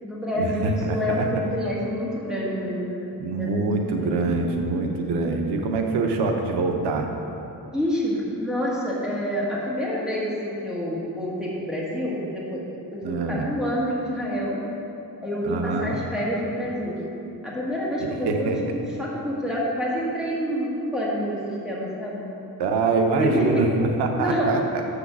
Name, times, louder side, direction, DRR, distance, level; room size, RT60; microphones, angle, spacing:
voice 1, 0.0-3.1 3.4-4.2 7.7-12.6 12.9-14.6 15.2-17.0 17.4-21.4 21.6-22.2 23.2-23.6 24.2-24.5, equal, ahead, -6 dB, 1.6 m, -27 dB
voice 2, 0.8-1.2 3.2-7.1 13.0-13.4 15.4-16.0 18.0-18.6 22.6-24.8, right 3 dB, 85° right, 3 dB, 1.0 m, -24 dB
7.3 x 6.7 x 6.2 m, 2.8 s
cardioid pair, 165°, 39 cm